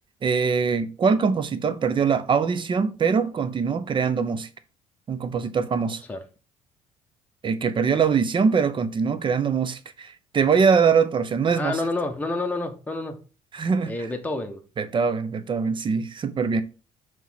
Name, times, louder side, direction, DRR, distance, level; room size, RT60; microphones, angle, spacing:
voice 1, 0.2-4.5 5.1-6.0 7.4-11.8 13.5-14.0 14.8-16.6, right 5 dB, 40° right, 0.8 m, -23 dB
voice 2, 11.6-13.2 13.9-14.6, left 2 dB, 10° left, 1.4 m, -28 dB
5.7 x 3.6 x 5.8 m
cardioid pair, 90°, 13 cm